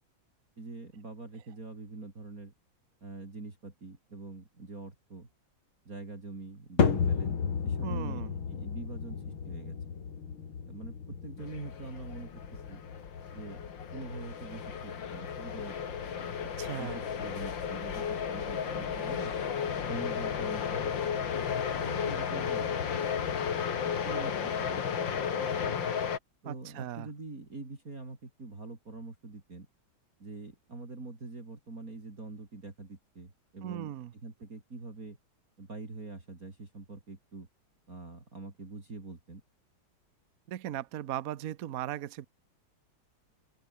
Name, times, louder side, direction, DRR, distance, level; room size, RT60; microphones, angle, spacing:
voice 1, 0.6-2.5 3.0-5.3 5.9-7.4 7.6-8.2 8.5-9.8 10.7-12.8 13.3-13.6 13.9-15.8 16.2-16.3 16.7-19.3 19.9-21.2 21.8-22.8 24.0-25.8 26.4-29.7 30.2-33.9 34.2-35.2 35.6-37.5 37.9-39.4, right 3 dB, 40° right, 4.5 m, -44 dB
sound 1, 6.8-23.2, left 6 dB, 85° left, 3.3 m, -36 dB
voice 2, 7.8-8.3 16.6-17.0 26.4-27.1 33.6-34.1 40.5-42.3, right 12 dB, 60° right, 1.0 m, -38 dB
sound 2, 11.4-26.2, left 7 dB, 65° left, 2.5 m, -34 dB
omnidirectional pair, 2.2 m